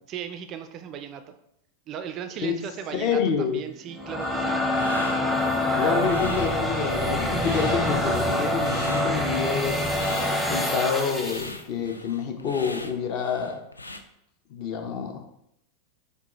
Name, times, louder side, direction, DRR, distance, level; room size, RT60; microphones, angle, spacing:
voice 1, 0.1-1.2 1.9-4.6, right 8 dB, 35° right, 9 dB, 0.3 m, -36 dB
voice 2, 3.0-3.6 5.7-9.8 10.5-13.6 14.5-15.2, left 6 dB, 40° left, 4 dB, 0.7 m, -27 dB
sound 1, 3.8-11.5, left 1 dB, 5° left, 0.7 m, -26 dB
sound 2, 4.2-14.0, left 2 dB, 80° left, 0.3 m, -42 dB
4.5 x 3.8 x 3.0 m, 0.77 s
figure-of-eight pair, 90°, 0 cm